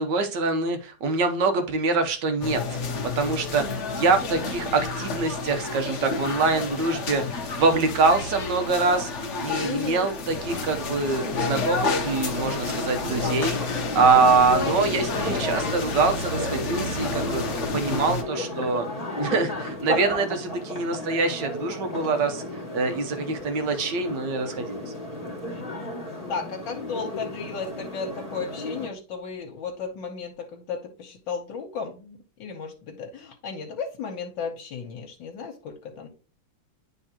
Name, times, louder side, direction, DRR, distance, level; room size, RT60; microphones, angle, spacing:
voice 1, 0.0-2.8 3.2-13.6 13.9-18.8 19.2-22.4 22.7-24.9, right 4 dB, 70° right, 7 dB, 1.5 m, -24 dB
sound 1, 2.4-18.2, left 3 dB, 50° left, 0.9 m, -30 dB
voice 2, 9.6-10.1 18.4-18.8 26.3-36.1, left 5 dB, 75° left, 2 dB, 1.6 m, -34 dB
sound 2, 11.1-28.9, left 1 dB, 20° left, 1.4 m, -34 dB
10.5 x 3.5 x 2.9 m, 0.35 s
omnidirectional pair, 2.1 m